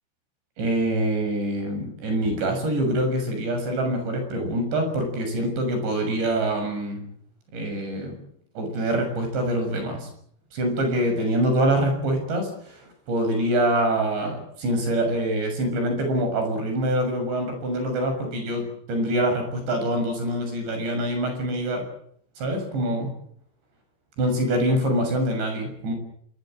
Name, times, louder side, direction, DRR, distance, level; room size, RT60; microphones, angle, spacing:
voice 1, 0.6-7.0 7.5-8.2 8.6-10.1 10.5-12.8 13.1-21.8 22.4-23.1 24.2-25.9, right 1 dB, 60° right, 5 dB, 8.9 m, -25 dB
25.5 x 22.0 x 7.8 m, 0.65 s
omnidirectional pair, 5.9 m